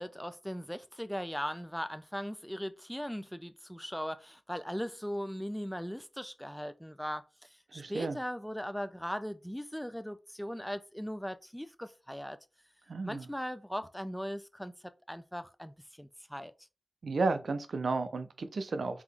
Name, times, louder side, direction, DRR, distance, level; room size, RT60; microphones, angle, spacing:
voice 1, 0.0-12.4 13.0-14.7 15.1-16.5, equal, 5° left, 0.4 m, -39 dB
voice 2, 7.7-8.2 12.9-13.3 17.0-19.0, right 3 dB, 85° right, 0.5 m, -32 dB
3.8 x 3.0 x 3.3 m
wide cardioid pair, 100°, 0 cm